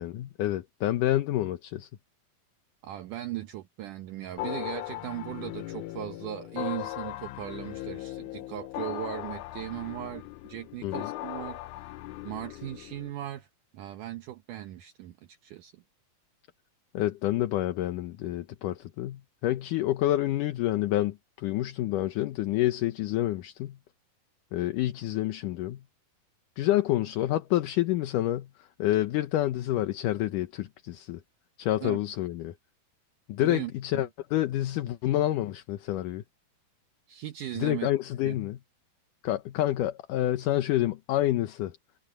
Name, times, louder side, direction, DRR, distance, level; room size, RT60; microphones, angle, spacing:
voice 1, 0.0-1.9 10.8-11.1 16.9-23.8 24.5-25.8 26.6-31.2 31.6-32.5 33.3-36.2 37.6-38.6 39.2-41.7, left 14 dB, 70° left, 2.3 m, -28 dB
voice 2, 2.8-11.8 12.2-13.5 13.7-15.8 31.8-32.0 33.4-34.1 37.1-37.9 38.3-38.4, right 13 dB, 70° right, 2.2 m, -38 dB
sound 1, 4.4-13.1, left 16 dB, 90° left, 1.8 m, -38 dB
omnidirectional pair, 4.2 m